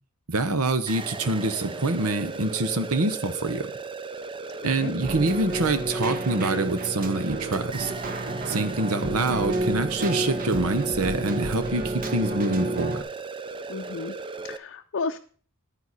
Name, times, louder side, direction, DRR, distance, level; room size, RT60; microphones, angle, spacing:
voice 1, 0.3-3.7 4.6-7.9 8.5-13.0, right 2 dB, 75° right, 11 dB, 1.1 m, -26 dB
sound 1, 0.9-14.6, right 3 dB, 20° right, 0.5 m, -36 dB
Keyboard (musical), 5.0-13.0, right 2 dB, 40° right, 1.0 m, -30 dB
voice 2, 13.7-14.1 14.4-15.2, left 4 dB, 55° left, 5 dB, 0.6 m, -32 dB
10.0 x 9.5 x 4.2 m, 0.42 s
head